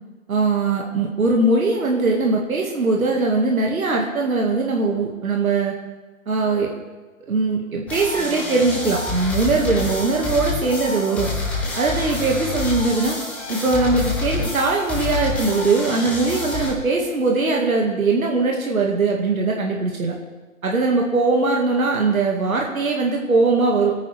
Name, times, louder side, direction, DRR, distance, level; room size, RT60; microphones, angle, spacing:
voice 1, 0.3-5.8 6.3-6.7 7.3-11.3 11.8-13.2 13.5-20.2 20.6-23.9, right 3 dB, 80° right, 0 dB, 2.1 m, -20 dB
sound 1, 7.9-16.7, left 3 dB, 5° left, 0.8 m, -27 dB
23.0 x 9.3 x 3.5 m, 1.3 s
hypercardioid pair, 155°, 41 cm